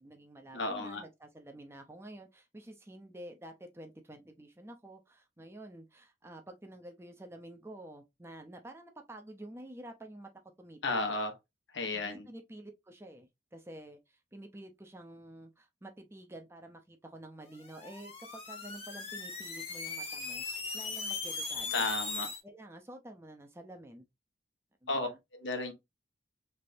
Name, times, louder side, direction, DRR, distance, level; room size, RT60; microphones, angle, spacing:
voice 1, 0.0-10.3 10.6-11.0 11.9-20.4 20.7-21.9 22.4-24.0 24.8-25.2, right 1 dB, 15° right, 0.5 m, -49 dB
voice 2, 0.5-1.0 10.8-11.3 11.7-12.3 21.7-22.3 24.9-25.7, left 3 dB, 80° left, 1.0 m, -33 dB
sound 1, 17.6-22.4, left 4 dB, 35° left, 1.0 m, -39 dB
3.4 x 3.3 x 2.5 m
head